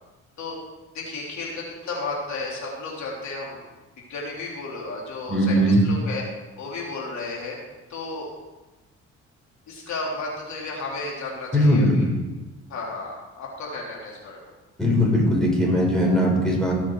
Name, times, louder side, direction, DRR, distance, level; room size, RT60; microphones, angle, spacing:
voice 1, 0.9-3.6 4.1-6.2 6.6-7.6 7.9-8.3 9.7-12.0 12.7-14.5, left 3 dB, 65° left, -3 dB, 3.3 m, -33 dB
voice 2, 5.3-5.8 11.5-12.1 14.8-16.7, equal, ahead, -3 dB, 4.7 m, -19 dB
18.0 x 6.3 x 4.8 m, 1.1 s
cardioid pair, 90°, 30 cm